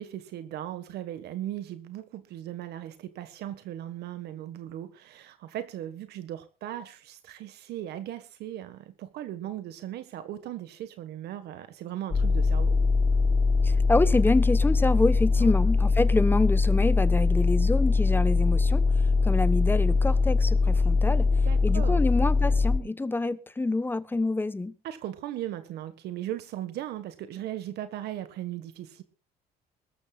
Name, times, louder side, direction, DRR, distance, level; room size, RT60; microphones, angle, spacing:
voice 1, 0.0-12.8 15.4-15.5 21.4-22.0 24.8-29.0, right 12 dB, 75° right, 1.5 m, -38 dB
sound 1, 12.1-22.8, left 4 dB, 30° left, 5.6 m, -22 dB
voice 2, 13.6-18.8 19.2-21.3 21.6-24.7, left 2 dB, 10° left, 1.1 m, -27 dB
23.5 x 13.5 x 2.4 m
cardioid pair, 110°, 17 cm